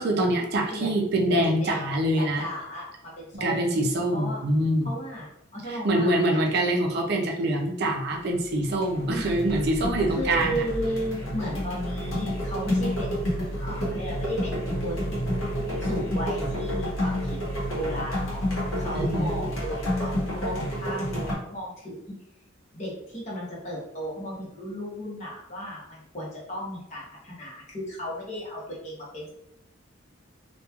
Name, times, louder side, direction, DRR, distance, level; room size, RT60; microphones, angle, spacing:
voice 1, 0.0-2.5 3.3-4.9 5.7-10.6 18.9-19.4, right 1 dB, 55° right, 1 dB, 0.4 m, -25 dB
voice 2, 1.3-3.6 4.1-4.4 4.8-6.4 9.1-9.3 10.1-15.4 15.8-17.4 17.7-18.4 18.8-22.1 22.7-29.3, equal, 35° left, -5 dB, 0.8 m, -35 dB
sound 1, 8.1-8.4 8.7-21.3, equal, 85° left, 0.9 m, -29 dB
2.9 x 2.2 x 2.3 m, 0.82 s
head